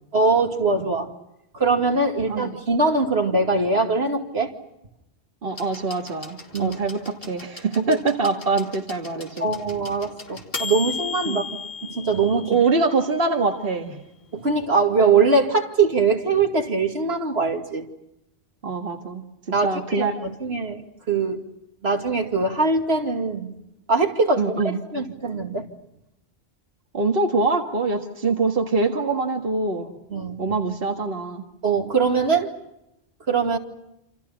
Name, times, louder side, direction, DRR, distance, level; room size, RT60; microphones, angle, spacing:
voice 1, 0.1-1.1 1.5-4.5 6.5-6.8 7.9-8.0 9.4-11.4 11.9-12.6 14.3-17.9 19.5-21.4 21.8-23.5 23.9-25.7 30.1-30.5 31.6-32.5 33.3-33.6, right 4 dB, 80° right, 3 dB, 2.7 m, -22 dB
voice 2, 2.3-2.6 5.4-9.5 11.3-11.6 12.5-14.0 18.6-19.3 19.6-20.4 24.4-24.8 26.9-30.0 30.4-31.4, right 3 dB, 65° right, 2 dB, 2.0 m, -24 dB
sound 1, 5.6-13.3 14.4-14.5, left 5 dB, 65° left, 2.9 m, -36 dB
28.0 x 28.0 x 5.8 m, 0.86 s
omnidirectional pair, 1.0 m